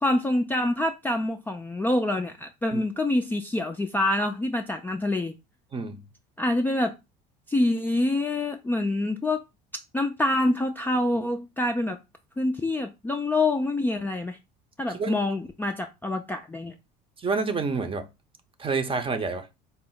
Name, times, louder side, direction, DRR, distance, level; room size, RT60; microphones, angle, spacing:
voice 1, 0.0-5.3 6.4-6.9 7.5-9.4 9.9-12.0 12.4-14.4 14.8-16.7, left 2 dB, 10° left, 0.4 m, -26 dB
voice 2, 14.9-15.2 17.2-18.1 18.6-19.5, right 4 dB, 25° right, 0.7 m, -28 dB
4.2 x 2.0 x 3.8 m
supercardioid pair, 85°, 21 cm